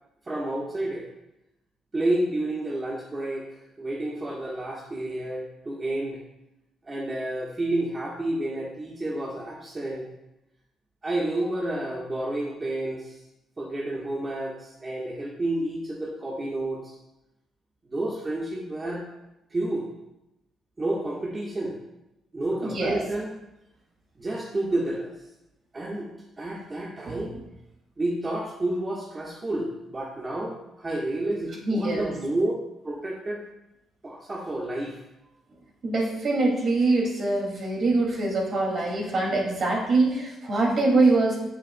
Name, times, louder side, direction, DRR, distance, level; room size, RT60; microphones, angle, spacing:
voice 1, 0.3-1.0 1.9-3.4 3.8-6.2 6.9-10.0 11.0-13.1 13.6-16.9 17.9-19.0 19.5-19.9 20.8-21.8 22.3-23.3 24.2-25.1 25.7-26.1 26.4-27.4 28.0-32.5 32.8-33.4 34.0-35.0, right 1 dB, 30° right, -4 dB, 1.4 m, -30 dB
voice 2, 22.6-23.0 27.1-27.2 31.6-32.1 35.8-41.4, right 2 dB, 55° right, -1 dB, 2.4 m, -23 dB
7.5 x 7.2 x 2.3 m, 0.91 s
supercardioid pair, 60°, 0 cm